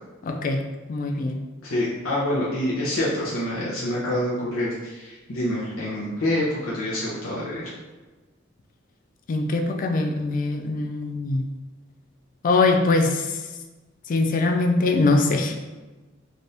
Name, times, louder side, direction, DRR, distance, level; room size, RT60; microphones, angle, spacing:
voice 1, 0.2-0.6 0.9-1.4 9.3-11.5 12.4-13.4 14.1-15.6, left 3 dB, 40° left, 3 dB, 0.3 m, -22 dB
voice 2, 1.6-7.7, left 1 dB, 85° left, -8 dB, 0.7 m, -26 dB
3.3 x 2.5 x 2.7 m, 1.2 s
head